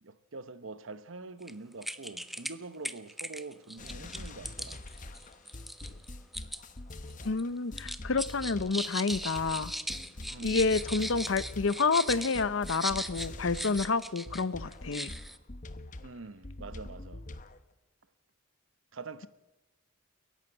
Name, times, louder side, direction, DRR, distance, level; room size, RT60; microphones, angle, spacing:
voice 1, 0.0-4.8 10.3-10.6 16.0-17.2 18.9-19.3, right 3 dB, 70° right, 0.9 m, -45 dB
sound 1, 1.4-1.5 1.8-2.5 2.8-6.6 6.9-7.4 7.8-14.4 14.7-15.4, equal, ahead, 0.6 m, -38 dB
sound 2, 3.8-14.0 14.3-17.6, left 2 dB, 40° left, 0.9 m, -44 dB
voice 2, 7.2-9.7 10.4-15.1, left 4 dB, 70° left, 0.7 m, -29 dB
29.5 x 11.5 x 7.8 m
head